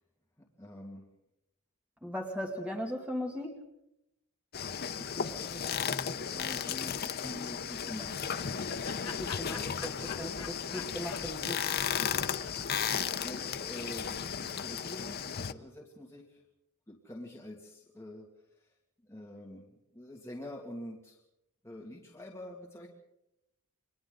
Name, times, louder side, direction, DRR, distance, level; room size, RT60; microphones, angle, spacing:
voice 1, 0.6-1.0 5.0-5.8 6.1-8.5 9.5-10.1 12.8-16.4 16.9-18.3 19.0-19.7 19.9-21.2 21.6-22.9, left 1 dB, 10° left, -2 dB, 2.3 m, -46 dB
voice 2, 2.0-3.5 9.1-9.6 9.8-9.9 10.2-11.6, equal, 5° right, 1 dB, 2.5 m, -37 dB
sound 1, 4.5-15.5, left 7 dB, 45° left, 0.7 m, -35 dB
Laughter, 8.0-13.2, left 6 dB, 80° left, 1.6 m, -46 dB
29.0 x 24.0 x 3.9 m, 0.84 s
head